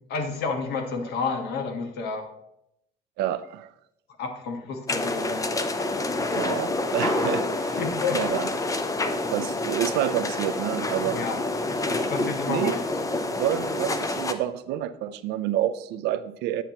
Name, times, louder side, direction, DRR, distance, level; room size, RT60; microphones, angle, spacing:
voice 1, 0.1-2.3 4.2-5.4 5.8-5.9 7.8-8.2 11.1-11.4 11.9-12.8, left 4 dB, 75° left, 4 dB, 1.4 m, -30 dB
voice 2, 3.2-3.7 6.3-7.8 8.1-8.5 9.3-11.2 12.5-12.8 13.3-16.6, right 12 dB, 85° right, 12 dB, 0.5 m, -28 dB
sound 1, 4.9-14.3, left 2 dB, 20° left, 0.7 m, -28 dB
10.0 x 7.0 x 2.9 m, 0.79 s
cardioid pair, 110°, 17 cm